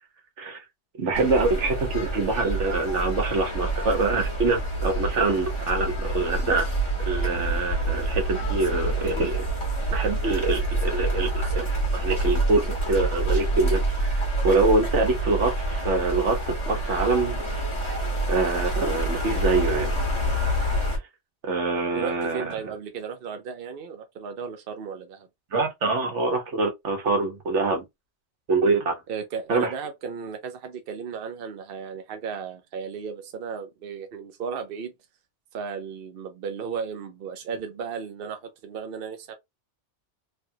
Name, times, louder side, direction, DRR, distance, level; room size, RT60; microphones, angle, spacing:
voice 1, 1.0-6.6 7.0-9.5 9.9-11.7 11.9-17.4 18.3-19.9 21.4-22.6 25.5-27.8 28.5-28.9 29.5-29.7, right 3 dB, 80° right, 1.4 m, -25 dB
sound 1, 1.1-21.0, right 1 dB, 25° left, 1.3 m, -27 dB
voice 2, 21.9-25.3 29.1-34.9 35.5-39.3, right 6 dB, 60° right, 0.8 m, -35 dB
3.3 x 2.4 x 2.7 m
omnidirectional pair, 1.2 m